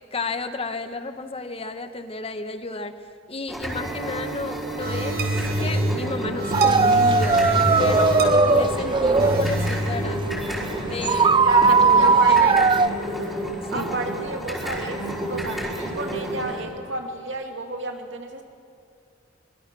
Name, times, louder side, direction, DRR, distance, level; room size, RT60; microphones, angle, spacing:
voice 1, 0.1-2.9 3.3-5.3 5.6-10.2 10.8-12.7 13.7-14.0, left 2 dB, 30° left, 9 dB, 1.2 m, -32 dB
sound 1, 3.5-16.6, right 1 dB, ahead, 4.5 m, -31 dB
sound 2, 4.8-13.4, equal, 60° right, 4.2 m, -28 dB
sound 3, 6.5-10.7 11.0-12.9, right 4 dB, 25° right, 0.4 m, -18 dB
voice 2, 11.4-12.5 13.7-15.0 15.3-18.4, right 2 dB, 80° right, 2 dB, 2.6 m, -31 dB
24.0 x 22.0 x 6.2 m, 2.4 s
head